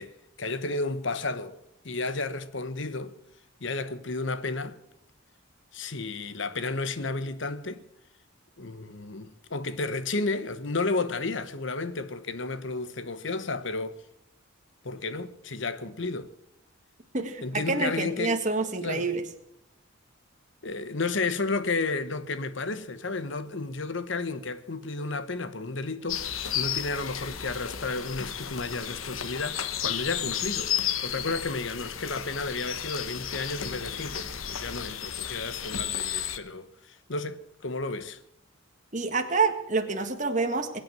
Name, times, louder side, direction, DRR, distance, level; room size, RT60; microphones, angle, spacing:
voice 1, 0.0-1.6 1.8-3.1 3.6-4.8 5.7-7.8 8.6-14.0 14.8-16.3 17.4-18.4 18.8-19.1 20.6-30.7 31.0-38.2, left 3 dB, 65° left, 1.1 m, -32 dB
voice 2, 17.1-19.2 38.9-40.8, right 4 dB, 40° right, 1.7 m, -27 dB
sound 1, 26.1-36.4, left 9 dB, 85° left, 1.1 m, -33 dB
22.0 x 8.9 x 7.5 m
head